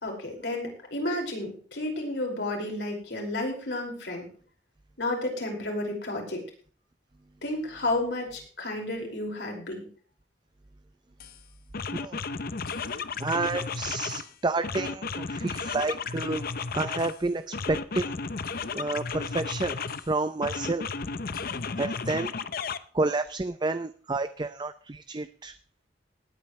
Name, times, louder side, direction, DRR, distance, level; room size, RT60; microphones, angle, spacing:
voice 1, 0.0-4.3 5.0-6.4 7.4-9.8, left 2 dB, 75° left, 1 dB, 5.3 m, -31 dB
sound 1, 11.2-11.4 11.7-14.3 14.6-17.2 17.5-20.1 20.4-22.8, left 4 dB, 55° left, 0.7 m, -33 dB
voice 2, 13.2-16.4 16.7-18.1 18.8-19.7 20.1-20.8 21.8-22.3 22.9-25.5, right 3 dB, 25° right, 11 dB, 0.5 m, -30 dB
20.0 x 9.3 x 3.2 m, 0.43 s
head